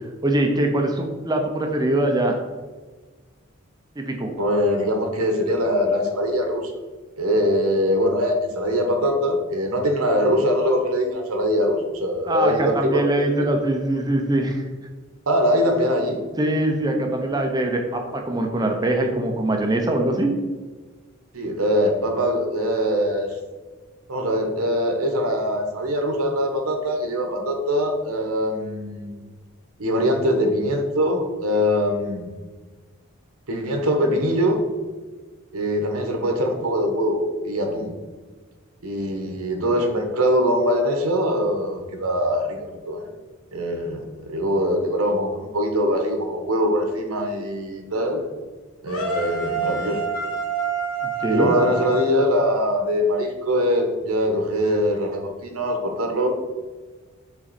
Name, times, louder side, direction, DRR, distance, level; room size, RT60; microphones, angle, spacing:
voice 1, 0.2-2.4 4.0-4.3 12.3-14.7 16.4-20.4 51.2-51.6, right 1 dB, 20° right, 3 dB, 0.6 m, -22 dB
voice 2, 4.4-6.8 7.2-13.0 15.3-16.2 21.3-23.4 24.1-29.3 29.8-32.3 33.5-34.6 35.5-37.9 38.8-43.1 43.5-48.3 48.8-50.0 51.3-56.3, equal, 90° right, 4 dB, 1.1 m, -22 dB
sound 1, 48.9-53.0, right 4 dB, 75° left, 1.8 m, -28 dB
5.9 x 4.1 x 4.1 m, 1.3 s
head